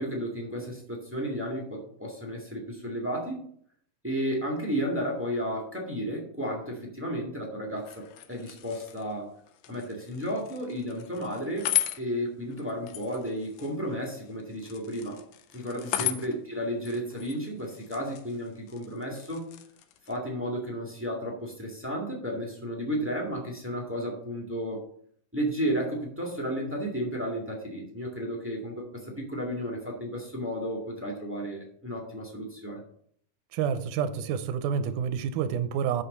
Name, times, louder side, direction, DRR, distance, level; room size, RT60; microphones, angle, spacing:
voice 1, 0.0-3.4 4.0-9.3 9.7-11.7 12.0-15.2 15.5-19.5 20.1-24.8 25.3-32.8, equal, 10° right, -2 dB, 0.7 m, -33 dB
sound 1, 7.8-20.2, left 13 dB, 80° left, 2.2 m, -37 dB
voice 2, 33.5-36.0, right 7 dB, 80° right, 10 dB, 2.0 m, -28 dB
6.3 x 5.8 x 6.7 m, 0.63 s
omnidirectional pair, 3.8 m